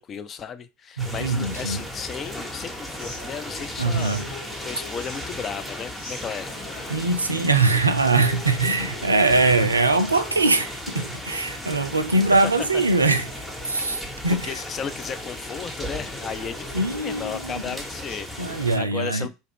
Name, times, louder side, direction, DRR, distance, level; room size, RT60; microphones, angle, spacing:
voice 1, 0.0-6.6 12.4-12.9 14.3-19.3, left 7 dB, 35° left, 0.4 m, -35 dB
sound 1, 1.0-18.8, equal, 5° left, 1.1 m, -36 dB
voice 2, 1.0-1.8 3.8-4.3 6.9-13.3 13.7-14.5 16.7-17.6 18.4-19.3, right 3 dB, 90° right, 0.4 m, -22 dB
sound 2, 2.2-18.2, left 4 dB, 60° left, 1.4 m, -44 dB
2.9 x 2.4 x 3.4 m
figure-of-eight pair, 70°, 0 cm